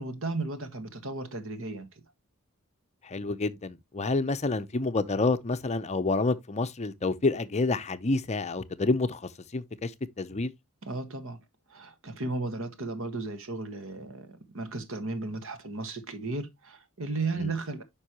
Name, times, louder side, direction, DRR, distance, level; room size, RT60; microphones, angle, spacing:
voice 1, 0.0-1.9 10.8-11.4 11.7-17.8, right 3 dB, 65° right, 1.4 m, -35 dB
voice 2, 3.0-9.2 9.5-9.9 10.2-10.5 17.4-17.5, left 3 dB, 30° left, 0.6 m, -28 dB
9.6 x 5.3 x 2.9 m
head